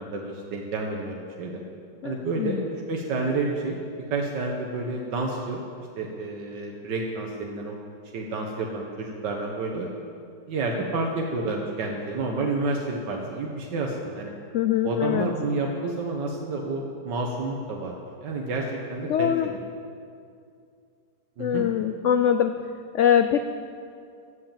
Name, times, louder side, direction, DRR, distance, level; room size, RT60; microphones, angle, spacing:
voice 1, 0.0-1.6 2.0-2.6 2.9-3.8 4.1-5.6 6.0-7.8 8.1-9.9 10.5-14.3 14.8-19.6 21.4-21.7, right 3 dB, 85° right, 0 dB, 1.8 m, -29 dB
voice 2, 2.0-2.6 14.5-15.3 19.1-19.5 21.4-22.6 22.9-23.4, left 9 dB, 85° left, 9 dB, 0.6 m, -23 dB
14.5 x 8.4 x 7.4 m, 2.4 s
omnidirectional pair, 1.8 m